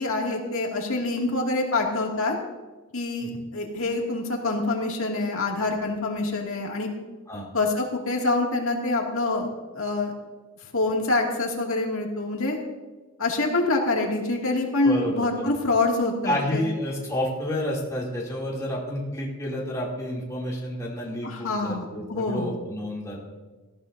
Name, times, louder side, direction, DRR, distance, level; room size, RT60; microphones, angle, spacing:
voice 1, 0.0-2.3 2.9-6.9 7.5-9.5 9.7-10.1 10.7-12.6 13.2-16.6 21.2-22.5, left 2 dB, 65° left, 0 dB, 2.4 m, -26 dB
voice 2, 14.8-15.5 16.2-23.2, left 1 dB, 15° left, -5 dB, 2.9 m, -30 dB
18.5 x 14.5 x 2.7 m, 1.2 s
head